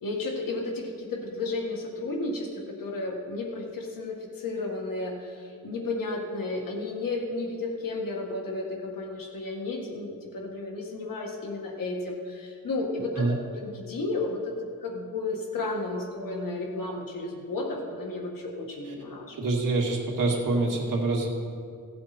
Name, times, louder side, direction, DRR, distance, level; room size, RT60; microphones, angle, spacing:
voice 1, 0.0-14.5 14.8-19.4, left 2 dB, 80° left, 0 dB, 1.9 m, -33 dB
voice 2, 19.4-21.3, right 2 dB, 70° right, -1 dB, 2.1 m, -25 dB
16.5 x 7.8 x 4.3 m, 2.2 s
wide cardioid pair, 125°, 33 cm